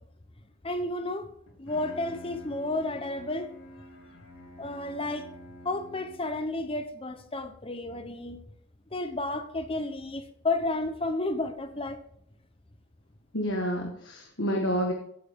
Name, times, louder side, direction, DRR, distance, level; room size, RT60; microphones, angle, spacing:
voice 1, 0.6-1.3 1.6-3.5 4.6-5.3 5.6-8.4 8.9-12.0, left 2 dB, 25° left, 9 dB, 0.8 m, -32 dB
Bowed string instrument, 1.5-6.5, left 1 dB, 75° left, 4.4 m, -47 dB
voice 2, 13.3-14.9, equal, 60° left, 1 dB, 1.6 m, -29 dB
15.5 x 9.4 x 3.6 m, 0.69 s
head